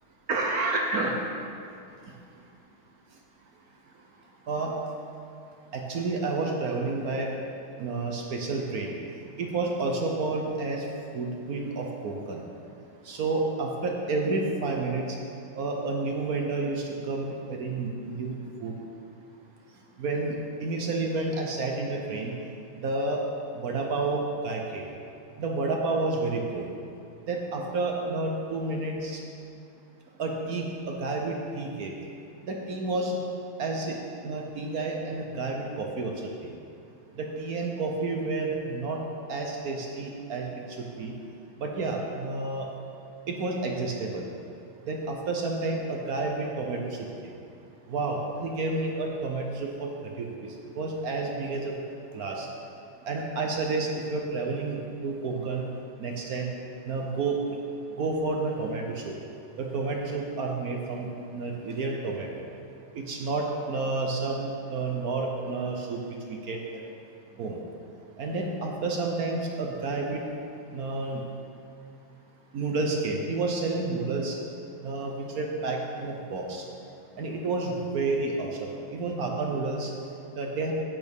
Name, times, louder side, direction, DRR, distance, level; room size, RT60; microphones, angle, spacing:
voice 1, 0.3-1.2 4.5-4.7 5.7-7.3 7.8-8.9 9.4-10.8 11.1-12.4 13.1-15.2 15.5-18.7 20.0-22.3 22.8-23.2 23.5-24.8 25.4-26.7 27.3-29.2 30.2-31.9 32.5-33.2 33.6-34.0 34.2-36.1 36.4-36.5 37.2-39.0 39.3-40.5 40.8-41.1 41.6-42.7 43.3-44.3 44.8-47.0 47.9-49.9 50.2-50.3 50.7-51.8 52.1-52.5 53.0-55.7 56.0-56.5 56.8-57.4 58.0-59.1 59.6-62.4 62.9-66.0 66.3-66.6 67.4-67.6 68.2-70.2 70.7-71.2 72.5-74.4 74.8-76.6 77.2-79.9 80.4-80.7, right 3 dB, 65° right, 1 dB, 0.9 m, -30 dB
10.5 x 8.5 x 3.6 m, 2.5 s
omnidirectional pair, 2.4 m